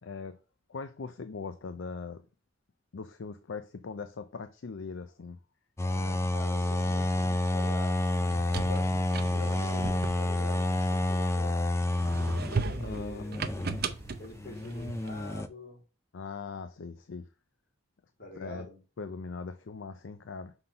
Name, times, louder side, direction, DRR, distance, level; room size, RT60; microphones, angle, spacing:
voice 1, 0.0-0.4 0.7-2.2 2.9-5.4 12.8-13.3 16.1-17.3 18.3-18.7 19.0-20.5, left 4 dB, 70° left, 0.5 m, -40 dB
voice 2, 5.8-11.5 12.6-13.4 14.2-15.8 18.2-18.8, left 2 dB, 50° left, 2.9 m, -45 dB
sound 1, 5.8-15.5, left 1 dB, 15° left, 0.4 m, -29 dB
sound 2, 8.1-11.4 11.9-15.3, right 4 dB, 50° right, 0.6 m, -37 dB
5.8 x 3.9 x 5.6 m
head